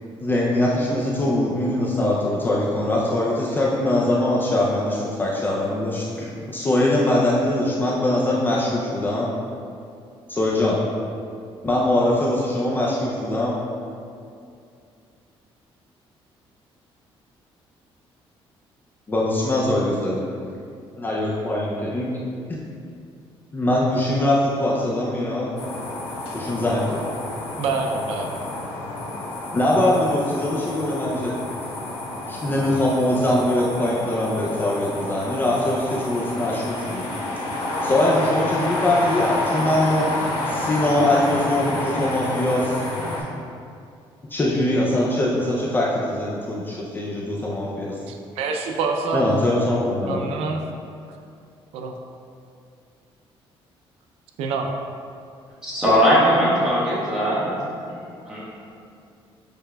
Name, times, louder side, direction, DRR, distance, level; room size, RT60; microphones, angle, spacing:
voice 1, 0.2-9.3 10.3-10.8 11.6-13.6 19.1-20.2 21.0-22.1 22.5-22.6 23.5-25.5 26.3-27.0 29.5-31.4 32.3-37.0 37.8-42.8 44.3-47.9 49.1-50.2, left 1 dB, 20° left, -5 dB, 0.4 m, -22 dB
sound 1, 25.6-43.2, left 2 dB, 70° left, 0.9 m, -29 dB
voice 2, 27.6-28.3 48.1-49.2 50.1-50.6 51.7-51.9 54.4-54.7, right 4 dB, 90° right, 3 dB, 0.4 m, -26 dB
voice 3, 55.6-57.5 58.3-58.4, equal, 5° right, -10 dB, 1.4 m, -19 dB
6.6 x 3.3 x 2.2 m, 2.4 s
cardioid pair, 155°, 10 cm